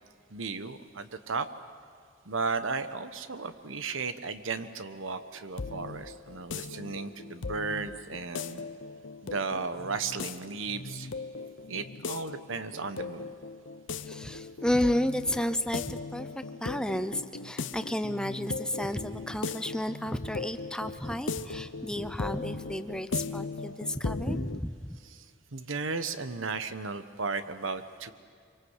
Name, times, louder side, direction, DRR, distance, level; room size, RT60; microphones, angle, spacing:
voice 1, 0.3-1.5 2.3-8.6 9.2-11.1 11.7-13.3 25.0-25.2 25.5-28.1, right 4 dB, 85° right, 11 dB, 1.2 m, -35 dB
sound 1, 5.2-24.6, left 4 dB, 70° left, 0.8 m, -38 dB
voice 2, 14.0-25.0, left 1 dB, 5° left, 10 dB, 0.7 m, -32 dB
24.5 x 24.5 x 8.2 m, 2.2 s
head